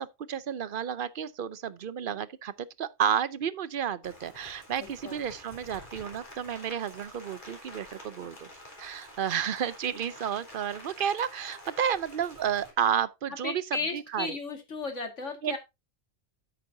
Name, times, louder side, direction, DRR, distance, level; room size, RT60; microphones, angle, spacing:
voice 1, 0.0-8.5 8.8-13.6 13.9-14.3 15.4-15.6, right 8 dB, 55° right, 0.7 m, -31 dB
Rain, 4.0-12.7, left 1 dB, 35° left, 3.9 m, -48 dB
voice 2, 4.8-5.2 13.4-15.6, left 4 dB, 65° left, 2.5 m, -35 dB
9.9 x 8.6 x 2.7 m
omnidirectional pair, 1.4 m